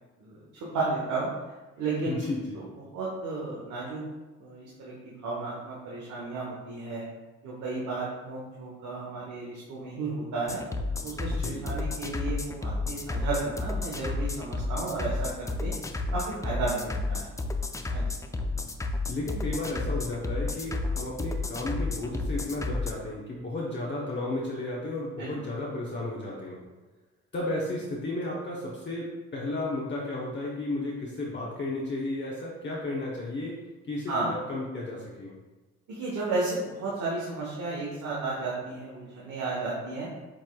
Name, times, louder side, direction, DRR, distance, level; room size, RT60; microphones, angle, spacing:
voice 1, 0.2-1.3 1.8-2.2 2.5-2.6 2.9-4.0 4.4-7.0 7.4-10.6 11.0-15.7 16.1-17.3 17.9-18.0 25.2-25.3 34.1-34.3 35.9-40.1, right 3 dB, 75° right, -5 dB, 1.1 m, -33 dB
voice 2, 2.0-2.6 11.3-11.6 19.1-26.6 27.3-33.6 33.9-35.3, left 2 dB, 40° left, -4 dB, 0.8 m, -33 dB
sound 1, 10.5-22.9, left 3 dB, 10° left, 0.3 m, -31 dB
7.4 x 3.2 x 2.3 m, 1.2 s
cardioid pair, 90°, 30 cm